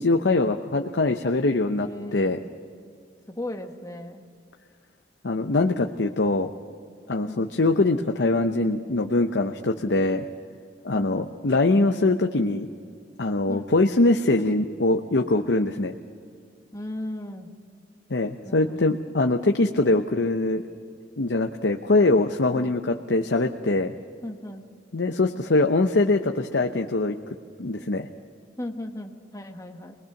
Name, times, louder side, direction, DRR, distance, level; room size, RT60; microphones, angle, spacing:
voice 1, 0.0-2.4 5.2-6.5 7.1-10.2 10.8-12.7 13.2-15.9 18.1-20.6 21.2-23.9 24.9-27.2 27.6-28.1, left 2 dB, 85° left, 4 dB, 0.8 m, -23 dB
voice 2, 1.8-2.4 3.3-4.3 7.2-7.5 10.9-11.3 13.5-13.7 16.7-17.5 18.4-18.9 22.5-22.8 24.2-24.7 28.6-29.9, left 1 dB, 20° left, 5 dB, 1.4 m, -36 dB
24.0 x 20.5 x 5.9 m, 2.2 s
head